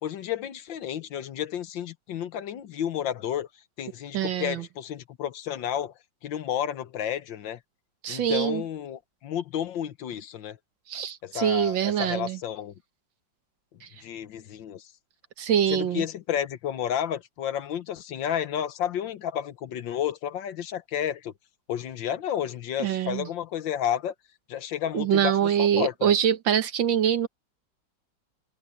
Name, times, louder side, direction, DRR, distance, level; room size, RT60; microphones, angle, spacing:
voice 1, 0.0-3.5 3.8-5.9 6.2-7.6 8.1-10.6 11.2-12.7 14.0-14.8 15.7-21.3 21.7-24.1 24.5-26.1, left 10 dB, 90° left, 1.7 m, -31 dB
voice 2, 4.1-4.7 8.0-8.6 10.9-12.4 13.8-13.9 15.4-16.1 22.8-23.3 24.9-27.3, right 9 dB, 90° right, 2.0 m, -24 dB
omnidirectional pair, 2.0 m